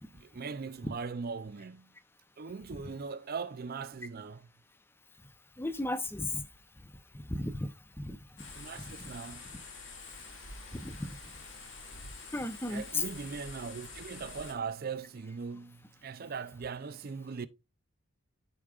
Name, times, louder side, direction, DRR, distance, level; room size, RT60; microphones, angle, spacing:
voice 1, 0.1-1.9 2.4-4.5 8.5-9.4 12.7-17.5, right 5 dB, 45° right, 0.5 m, -40 dB
voice 2, 5.6-6.4 7.3-7.7 8.0-8.2 10.7-11.1 12.3-13.0, left 2 dB, 10° left, 0.6 m, -34 dB
sound 1, 8.4-14.5, left 3 dB, 60° left, 2.2 m, -47 dB
13.5 x 4.9 x 2.4 m
head